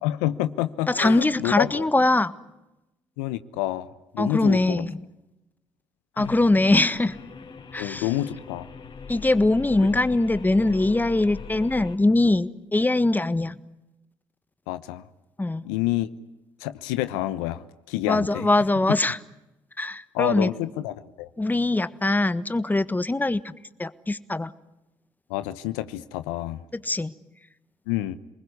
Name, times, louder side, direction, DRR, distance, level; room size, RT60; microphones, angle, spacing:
voice 1, 0.0-1.8 3.2-4.8 6.2-6.3 7.8-8.7 14.7-15.0 15.6-16.1 16.6-18.5 20.1-21.3 25.3-26.6 27.9-28.2, left 15 dB, 90° left, 13 dB, 0.9 m, -28 dB
voice 2, 0.9-2.3 4.2-5.0 6.2-7.2 7.7-8.1 9.1-13.6 15.4-15.7 18.1-19.2 19.8-20.5 21.4-23.5 23.8-24.5 26.7-27.1, left 2 dB, 15° left, 14 dB, 1.5 m, -22 dB
sound 1, 6.2-12.0, left 5 dB, 50° left, 4.3 m, -41 dB
28.5 x 20.5 x 9.7 m, 0.95 s
hypercardioid pair, 50°, 11 cm